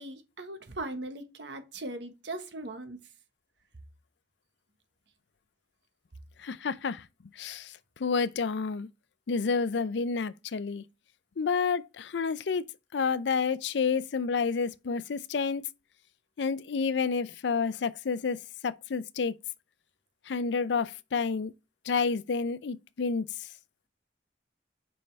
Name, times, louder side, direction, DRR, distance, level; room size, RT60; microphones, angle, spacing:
voice 1, 0.0-3.1, right 2 dB, 75° right, 1.3 m, -39 dB
voice 2, 6.4-7.1 7.4-7.7 8.0-8.9 9.3-10.8 11.4-12.7 12.9-15.6 16.4-19.3 20.3-21.5 21.9-23.2, left 5 dB, 75° left, 0.5 m, -29 dB
5.4 x 5.4 x 4.5 m
head